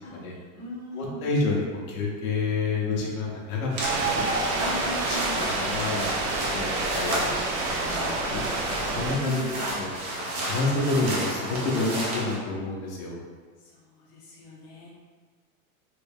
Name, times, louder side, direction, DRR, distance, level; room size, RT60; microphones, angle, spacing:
voice 1, 0.0-1.3 4.5-5.7 9.1-9.8 13.6-14.9, left 1 dB, 30° left, -7 dB, 0.6 m, -40 dB
voice 2, 0.9-4.3 4.8-6.1 6.4-9.5 9.8-13.2, left 3 dB, 70° left, -2 dB, 0.9 m, -29 dB
sound 1, 3.7-12.4, right 1 dB, 85° right, 1.1 m, -32 dB
sound 2, 3.8-9.1, right 3 dB, 55° right, 0.6 m, -28 dB
3.3 x 2.3 x 3.4 m, 1.5 s
supercardioid pair, 165°, 43 cm